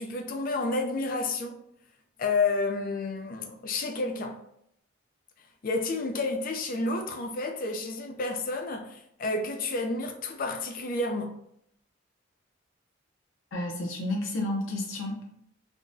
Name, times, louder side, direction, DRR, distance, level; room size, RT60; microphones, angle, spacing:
voice 1, 0.0-1.6 2.2-4.4 5.6-11.4, left 3 dB, 45° left, 0.4 m, -30 dB
voice 2, 13.5-15.2, left 1 dB, 90° left, 0.6 m, -31 dB
3.7 x 2.2 x 2.6 m
head